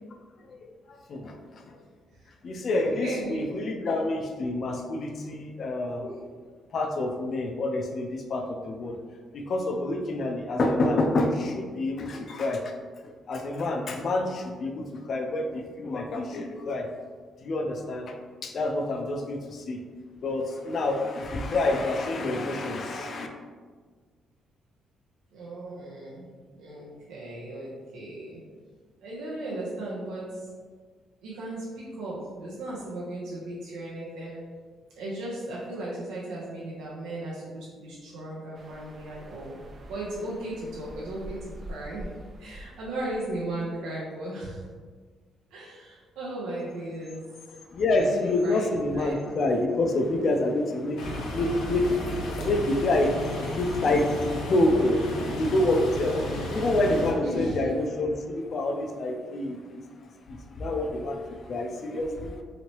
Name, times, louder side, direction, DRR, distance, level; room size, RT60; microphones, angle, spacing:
voice 1, 0.5-1.4 1.7-1.8 2.4-6.1 6.7-9.0 9.3-12.7 13.0-16.9 17.4-18.2 18.4-19.8 20.2-23.3 47.7-62.4, left 2 dB, 55° left, 4 dB, 0.4 m, -27 dB
voice 2, 2.8-3.5 3.8-3.9 6.0-6.2 25.3-28.4 29.0-30.5 31.2-34.4 34.9-39.6 39.9-42.1 42.4-44.6 45.5-47.2 48.0-49.2 56.3-57.7, right 1 dB, 90° right, -6 dB, 0.6 m, -36 dB
sound 1, 38.5-43.7, equal, 45° right, 0.4 m, -45 dB
sound 2, 51.0-57.1, left 1 dB, 85° left, 0.7 m, -33 dB
3.0 x 2.7 x 2.9 m, 1.5 s
cardioid pair, 90°, 0 cm